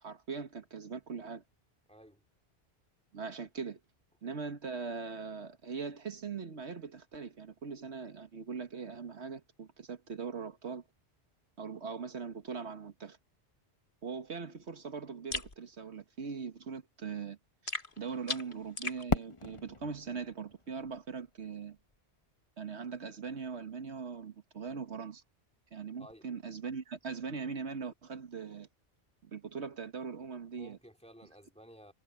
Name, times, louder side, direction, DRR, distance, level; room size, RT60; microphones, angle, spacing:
voice 1, 0.0-1.4 3.1-3.8 4.2-10.8 11.6-13.2 14.0-17.4 17.6-21.8 22.6-25.2 25.7-28.7 29.2-30.8, right 5 dB, 75° right, 1.7 m, -41 dB
voice 2, 1.9-2.2 26.0-26.2 30.6-31.9, equal, 5° left, 3.3 m, -54 dB
sound 1, 15.3-15.5 17.7-19.0, left 3 dB, 50° left, 1.9 m, -37 dB
Fireworks, 19.1-22.0, left 3 dB, 30° left, 1.2 m, -38 dB
omnidirectional pair, 1.1 m